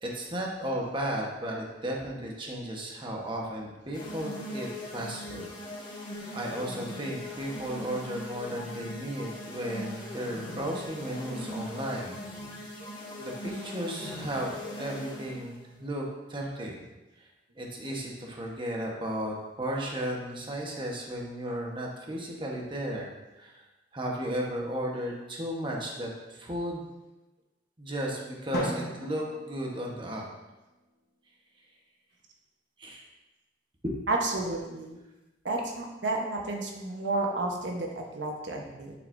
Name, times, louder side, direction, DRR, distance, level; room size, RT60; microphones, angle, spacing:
voice 1, 0.0-5.5 6.3-12.2 12.5-12.6 13.2-16.8 17.6-23.1 23.4-23.6 23.9-26.9 27.8-30.2 32.8-33.0 33.8-34.0, right 1 dB, 30° right, -1 dB, 1.2 m, -34 dB
sound 1, 3.9-15.5, left 1 dB, 30° left, 2.4 m, -40 dB
Drum, 28.5-30.5, equal, 65° left, 1.2 m, -36 dB
voice 2, 34.1-35.0 35.4-38.9, right 2 dB, 80° right, 0 dB, 1.1 m, -31 dB
9.3 x 7.1 x 2.7 m, 1.1 s
head